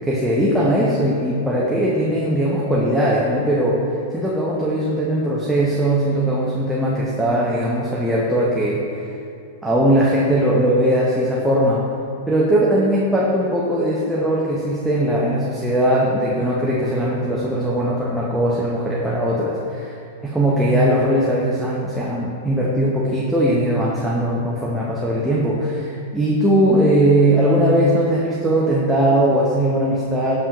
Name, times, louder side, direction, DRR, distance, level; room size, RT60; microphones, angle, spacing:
voice 1, 0.1-3.8 4.1-8.8 9.6-11.9 12.3-19.9 20.2-30.4, right 1 dB, 5° right, -6 dB, 0.7 m, -19 dB
6.8 x 5.4 x 2.9 m, 2.4 s
hypercardioid pair, 120°, 0 cm